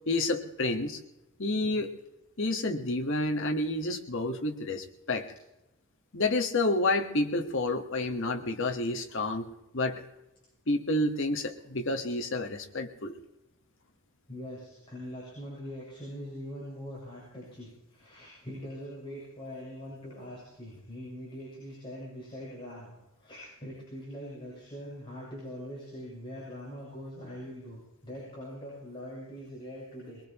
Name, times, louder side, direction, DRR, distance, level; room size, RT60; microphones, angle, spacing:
voice 1, 0.1-1.0 1.4-1.9 2.4-5.3 6.1-10.0 10.7-13.1, left 2 dB, 60° left, 4 dB, 1.4 m, -29 dB
voice 2, 14.3-30.2, equal, 25° left, -6 dB, 7.3 m, -42 dB
23.0 x 21.5 x 3.0 m, 0.94 s
head